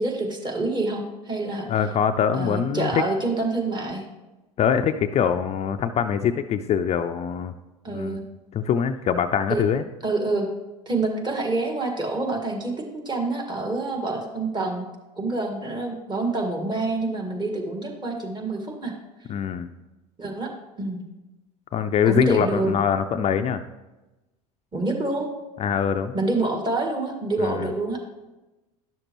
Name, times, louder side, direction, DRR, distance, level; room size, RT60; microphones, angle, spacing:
voice 1, 0.0-1.7 2.3-4.0 7.8-8.2 9.5-9.6 10.0-10.5 10.9-14.9 15.2-18.9 20.2-20.5 20.8-21.0 22.1-22.8 24.7-25.3 26.1-28.0, right 2 dB, 25° right, 2 dB, 1.8 m, -27 dB
voice 2, 1.7-3.0 4.6-7.5 7.9-8.2 8.5-9.8 19.3-19.7 21.7-23.6 25.6-26.1 27.4-27.7, left 8 dB, 35° left, 8 dB, 0.4 m, -23 dB
10.5 x 6.5 x 3.0 m, 1.1 s
hypercardioid pair, 85°, 19 cm